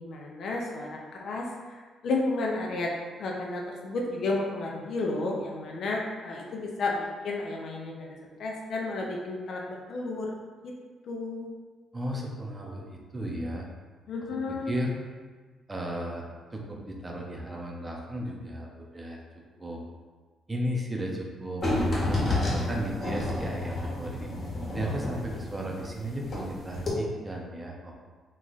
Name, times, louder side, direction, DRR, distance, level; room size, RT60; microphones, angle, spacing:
voice 1, 0.0-2.9 3.2-10.3 10.6-10.8 11.0-11.5 14.1-14.7, left 2 dB, 65° left, -1 dB, 0.6 m, -32 dB
voice 2, 11.9-13.7 14.7-15.0 15.7-16.2 16.5-19.2 19.6-19.8 20.5-21.6 21.9-24.3 24.7-27.9, right 1 dB, 20° right, -1 dB, 0.7 m, -34 dB
sound 1, 21.6-26.5 26.7-26.9, left 2 dB, 40° left, 1.2 m, -29 dB
3.1 x 2.4 x 4.0 m, 1.4 s
cardioid pair, 90°, 0 cm